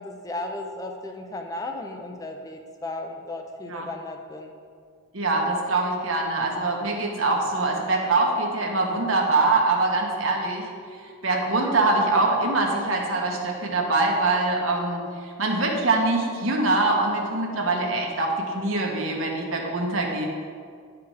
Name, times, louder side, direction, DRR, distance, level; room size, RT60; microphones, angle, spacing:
voice 1, 0.0-4.5, left 2 dB, 15° left, 4 dB, 0.5 m, -35 dB
voice 2, 5.1-10.7 11.2-15.0 15.4-20.3, right 2 dB, 90° right, 1 dB, 1.3 m, -23 dB
10.5 x 4.8 x 4.8 m, 2.1 s
head